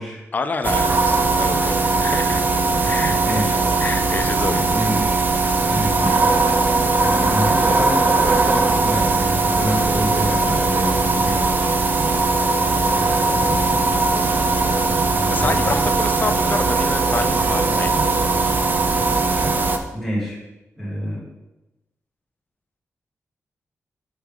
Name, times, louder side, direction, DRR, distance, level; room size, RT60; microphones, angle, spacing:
voice 1, 0.3-1.8 2.0-2.5 2.8-3.2 3.8-4.6 11.5-11.7 15.3-18.0, left 4 dB, 35° left, 9 dB, 0.4 m, -28 dB
sound 1, 0.6-19.8, right 3 dB, 35° right, 0.5 m, -19 dB
voice 2, 1.5-2.3 2.8-2.9 3.2-5.1 5.7-11.5 12.3-12.4 12.9-14.4 14.9-15.8 19.9-20.4 20.8-21.2, equal, ahead, -7 dB, 2.2 m, -28 dB
6.1 x 5.3 x 3.6 m, 1.0 s
wide cardioid pair, 140°, 5 cm